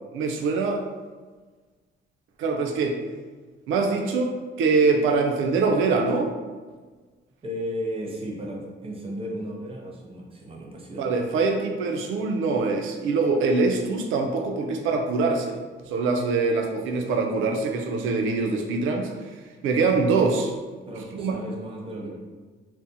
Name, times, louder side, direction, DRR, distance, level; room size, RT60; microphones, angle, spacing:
voice 1, 0.1-0.8 2.4-3.0 3.7-6.3 11.0-15.6 15.9-19.1 19.6-20.5 21.1-21.3, right 4 dB, 85° right, 3 dB, 0.4 m, -23 dB
voice 2, 7.4-11.1 20.9-22.2, equal, 30° right, -1 dB, 0.6 m, -34 dB
2.5 x 2.0 x 2.6 m, 1.4 s
cardioid pair, 90°, 20 cm